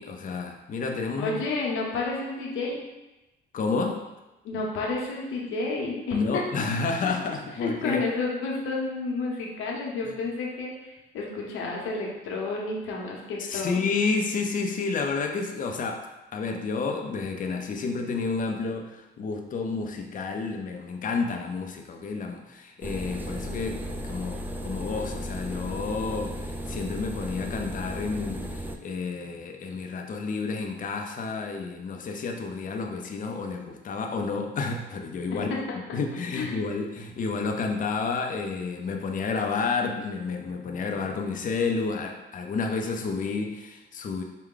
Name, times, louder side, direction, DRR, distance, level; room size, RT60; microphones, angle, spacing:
voice 1, 0.0-1.4 3.5-4.0 6.1-8.0 13.4-16.1 16.3-35.7 35.9-44.2, left 4 dB, 40° left, 3 dB, 0.5 m, -30 dB
voice 2, 1.2-2.8 4.4-6.4 7.0-7.1 7.6-13.8 35.3-35.4 35.7-35.8 36.3-36.7, left 3 dB, 90° left, -2 dB, 0.9 m, -31 dB
sound 1, 22.8-28.8, equal, 10° right, 0.3 m, -35 dB
4.6 x 2.2 x 3.7 m, 1.0 s
cardioid pair, 90°, 20 cm